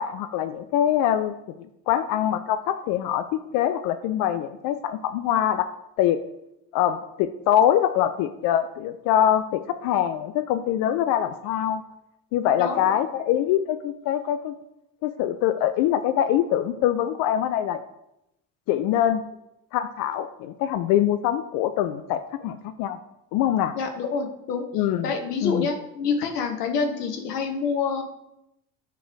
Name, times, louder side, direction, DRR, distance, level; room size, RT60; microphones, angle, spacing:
voice 1, 0.0-1.4 1.9-5.7 6.0-6.2 6.7-11.8 12.3-14.5 15.0-17.8 18.7-19.2 19.7-23.0 23.3-23.7 24.7-25.1 25.4-25.7, left 11 dB, 45° left, 10 dB, 0.5 m, -24 dB
voice 2, 12.6-13.0 23.7-24.6 25.0-28.0, left 5 dB, 70° left, 4 dB, 1.1 m, -27 dB
8.1 x 3.9 x 4.7 m, 0.83 s
figure-of-eight pair, 55°, 48 cm